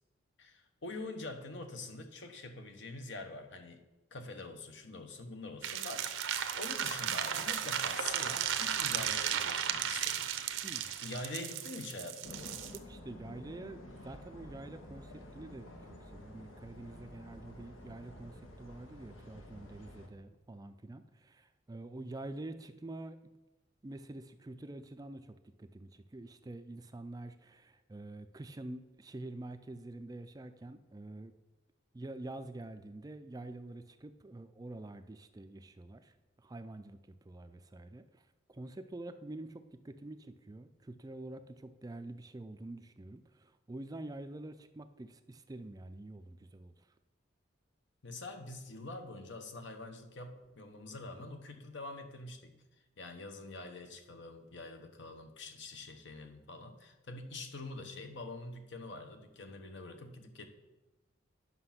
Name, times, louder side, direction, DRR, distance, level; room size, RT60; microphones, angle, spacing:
voice 1, 0.4-3.8 4.1-10.6 11.0-12.7 48.0-52.5 53.0-60.5, left 2 dB, 65° left, 6 dB, 1.1 m, -45 dB
sound 1, 5.6-12.8, right 9 dB, 80° right, 0.7 m, -35 dB
voice 2, 10.6-10.9 12.7-23.2 23.8-31.3 31.9-38.2 38.5-46.9, right 2 dB, 20° right, 9 dB, 0.4 m, -47 dB
sound 2, 12.2-20.1, left 1 dB, 90° left, 1.5 m, -51 dB
9.6 x 5.9 x 5.8 m, 1.1 s
head